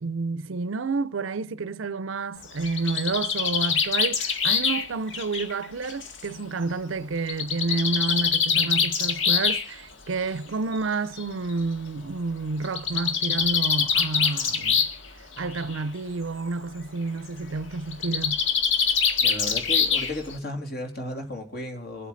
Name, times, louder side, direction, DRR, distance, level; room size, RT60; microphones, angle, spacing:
voice 1, 0.0-14.9 15.4-18.4, right 3 dB, 75° right, 0.6 m, -30 dB
Bird, 2.4-6.2 7.3-9.6 10.7-10.8 11.2-11.3 11.5-11.6 12.6-15.1 15.4-15.8 17.9-20.3, left 6 dB, 70° left, 1.7 m, -24 dB
voice 2, 19.2-22.1, left 1 dB, 50° left, 3.1 m, -34 dB
24.5 x 8.4 x 4.0 m
head